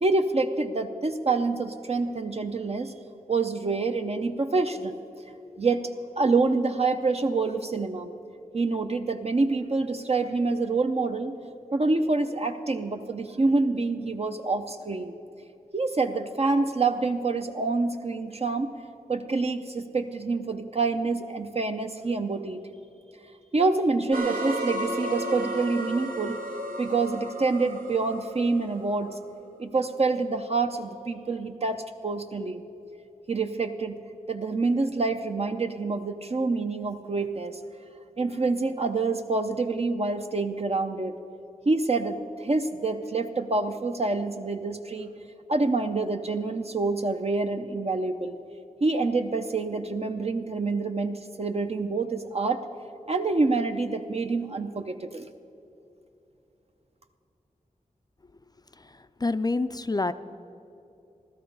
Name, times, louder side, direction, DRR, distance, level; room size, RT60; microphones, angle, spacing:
voice 1, 0.0-2.9 3.3-5.0 5.6-5.9 6.2-8.1 8.5-11.3 11.7-15.1 15.7-18.7 19.1-22.6 23.5-26.4 26.8-29.1 29.6-32.6 33.3-34.0 34.3-37.6 38.2-41.1 41.7-45.1 45.5-48.4 48.8-52.7 53.1-55.3, right 3 dB, 45° right, 6 dB, 0.6 m, -27 dB
sound 1, 24.1-29.1, right 1 dB, 75° right, 1.2 m, -33 dB
voice 2, 58.7-60.1, left 3 dB, 25° left, 12 dB, 0.4 m, -28 dB
15.0 x 13.0 x 5.4 m, 2.8 s
wide cardioid pair, 65°, 15 cm